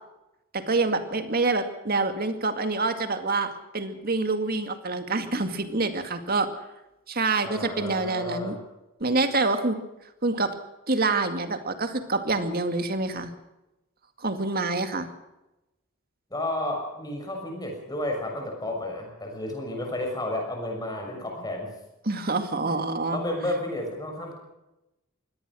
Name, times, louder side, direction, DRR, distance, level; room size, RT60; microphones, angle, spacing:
voice 1, 0.5-6.5 7.1-8.6 9.0-9.8 10.2-10.5 10.9-13.3 14.2-15.1 22.0-23.2, right 3 dB, 45° right, 8 dB, 2.2 m, -26 dB
voice 2, 7.4-8.6 16.3-21.7 22.6-22.8 23.1-24.3, left 1 dB, 20° left, 1 dB, 6.5 m, -32 dB
23.5 x 18.0 x 6.3 m, 0.94 s
head